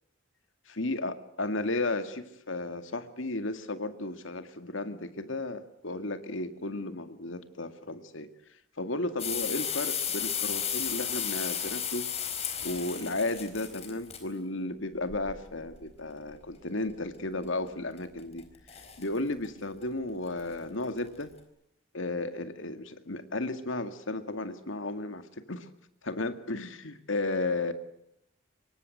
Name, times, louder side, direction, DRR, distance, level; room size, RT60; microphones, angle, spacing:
voice 1, 0.7-12.4 12.6-21.3 21.9-25.7 26.0-27.7, left 2 dB, 75° left, 10 dB, 2.2 m, -34 dB
sound 1, 9.2-14.2 15.1-15.8 17.4-17.5 18.0-18.4 18.7-19.0 19.4-19.5 19.8-19.9 20.4-20.5 21.0-21.2, left 8 dB, 30° left, 4.3 m, -33 dB
25.5 x 23.5 x 7.9 m, 0.77 s
head